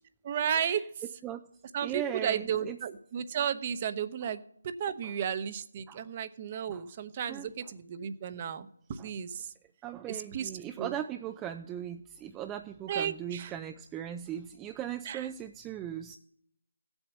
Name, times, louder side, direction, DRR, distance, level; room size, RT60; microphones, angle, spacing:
voice 1, 0.2-0.8 1.7-9.5 10.1-10.5 10.8-10.9 12.9-13.5 15.0-15.3, right 8 dB, 30° right, 12 dB, 0.8 m, -33 dB
voice 2, 1.8-2.8 4.2-4.3 5.0-5.1 5.9-6.1 6.7-6.8 7.3-7.5 9.0-9.1 9.8-16.2, right 10 dB, 10° right, 7 dB, 0.4 m, -38 dB
15.5 x 8.0 x 7.2 m, 0.71 s
figure-of-eight pair, 160°, 0 cm